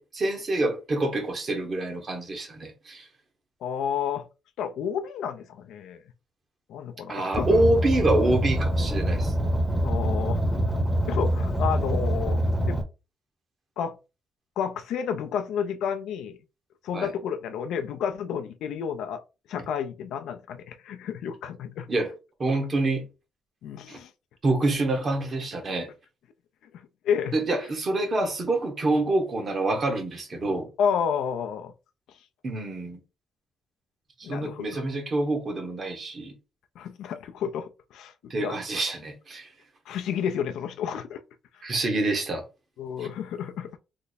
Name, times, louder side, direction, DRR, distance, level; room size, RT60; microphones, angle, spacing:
voice 1, 0.0-3.1 7.1-9.3 16.9-17.1 21.9-22.1 22.4-23.0 23.9-24.0 24.4-25.9 27.3-30.7 32.4-33.0 34.2-36.3 38.3-39.5 41.6-42.4 43.0-43.1, right 2 dB, 40° right, 1.2 m, -26 dB
voice 2, 3.6-4.3 4.6-6.0 6.7-7.6 9.8-10.4 10.7-10.8 11.1-12.4 12.7-12.8 13.8-14.0 14.6-16.4 16.8-19.2 19.5-21.9 23.6-24.1 27.0-27.3 30.8-31.7 34.2-34.8 36.8-38.9 39.9-41.2 41.5-41.6 42.8-43.7, left 7 dB, 80° left, 0.4 m, -30 dB
Car, 7.3-12.8, equal, 5° right, 0.8 m, -25 dB
3.3 x 2.0 x 4.1 m
cardioid pair, 90°, 0 cm